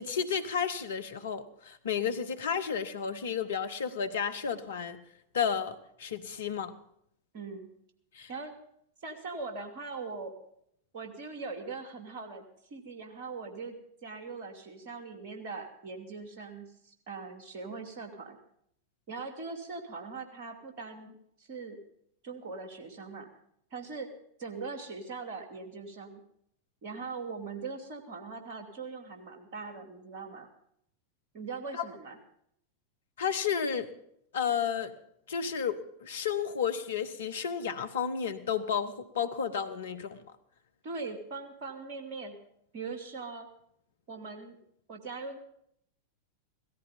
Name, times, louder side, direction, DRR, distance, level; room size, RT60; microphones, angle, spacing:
voice 1, 0.0-5.0 5.3-6.7 8.1-8.3 31.8-31.9 33.2-33.9 34.3-34.9 35.3-40.2, left 7 dB, 65° left, 1.2 m, -32 dB
voice 2, 7.3-7.7 8.3-8.5 9.0-10.3 10.9-12.4 12.7-13.8 14.0-18.4 19.1-21.8 22.2-23.3 23.7-24.1 24.4-26.2 26.8-30.5 31.3-32.2 40.8-42.4 42.7-43.5 44.1-44.6 44.9-45.4, right 4 dB, 45° right, 2.7 m, -41 dB
17.0 x 14.0 x 5.3 m
figure-of-eight pair, 90°, 0 cm